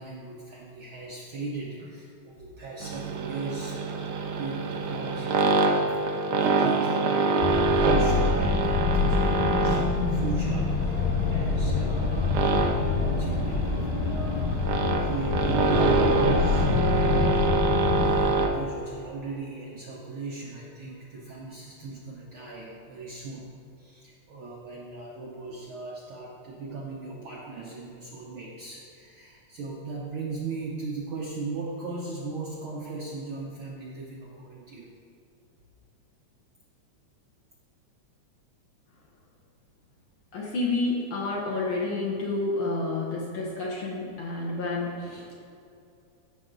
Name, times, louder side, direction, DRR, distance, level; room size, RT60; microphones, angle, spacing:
voice 1, 0.0-4.0 4.4-11.0 11.3-12.4 12.8-14.6 15.0-16.7 17.3-23.5 23.8-34.9, right 3 dB, 65° right, -4 dB, 1.3 m, -38 dB
sound 1, 2.8-18.5, right 3 dB, 85° right, 1.2 m, -26 dB
sound 2, 7.4-18.3, left 4 dB, 85° left, 2.3 m, -26 dB
voice 2, 40.3-45.4, left 2 dB, 55° left, -4 dB, 1.7 m, -29 dB
14.0 x 5.9 x 3.9 m, 2.6 s
omnidirectional pair, 3.4 m